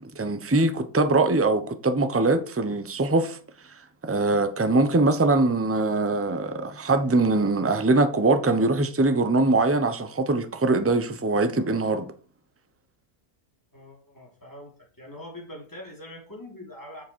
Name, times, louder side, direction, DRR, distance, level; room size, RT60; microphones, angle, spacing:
voice 1, 0.0-3.4 4.0-12.1, right 2 dB, 15° right, 0.6 m, -22 dB
voice 2, 13.7-17.0, left 1 dB, 15° left, 3.2 m, -43 dB
8.3 x 7.2 x 4.5 m
omnidirectional pair, 1.5 m